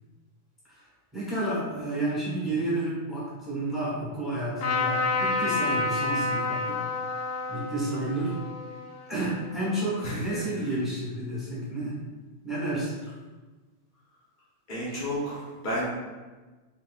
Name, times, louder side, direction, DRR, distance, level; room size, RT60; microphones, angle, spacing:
voice 1, 1.1-7.2 7.5-8.4 9.1-12.0 12.4-13.0, right 1 dB, ahead, -8 dB, 1.2 m, -31 dB
Trumpet, 4.6-10.1, left 3 dB, 60° left, 0.7 m, -30 dB
voice 2, 10.0-10.4 14.7-15.8, equal, 40° left, -8 dB, 1.0 m, -32 dB
4.1 x 4.0 x 2.4 m, 1.3 s
omnidirectional pair, 1.5 m